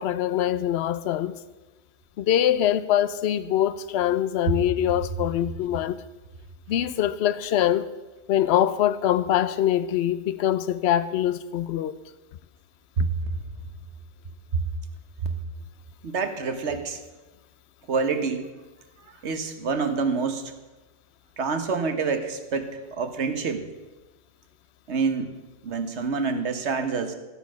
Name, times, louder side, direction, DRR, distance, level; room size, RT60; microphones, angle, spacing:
voice 1, 0.0-1.4 2.2-6.0 6.7-7.9 8.3-11.9, left 11 dB, 75° left, 0.9 m, -23 dB
voice 2, 16.0-17.0 17.9-18.5 19.2-20.5 21.4-23.6 24.9-25.3 25.6-27.1, right 5 dB, 85° right, 1.4 m, -27 dB
13.0 x 8.8 x 6.2 m
omnidirectional pair, 1.1 m